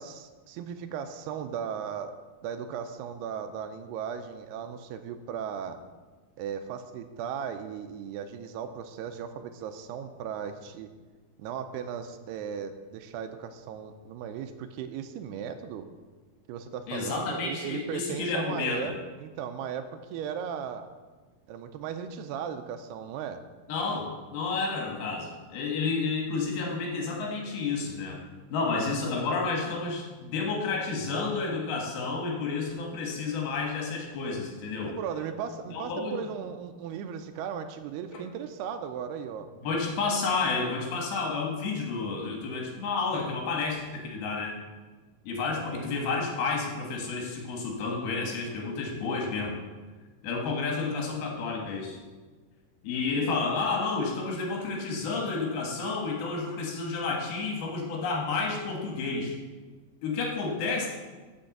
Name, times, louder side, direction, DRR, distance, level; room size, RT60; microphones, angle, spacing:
voice 1, 0.0-2.1 2.4-5.8 6.4-10.9 11.4-15.9 16.5-20.9 21.5-23.4 28.7-28.8 29.3-29.4 34.9-39.5 45.5-45.9, right 8 dB, 85° right, 8 dB, 2.6 m, -37 dB
voice 2, 16.9-19.0 23.7-28.2 28.5-35.0 35.7-36.2 38.1-38.2 39.6-44.5 45.2-49.6 50.2-52.0 52.8-59.4 60.0-60.9, left 4 dB, 70° left, 0 dB, 3.2 m, -30 dB
7.8 x 6.6 x 7.2 m, 1.3 s
omnidirectional pair, 4.7 m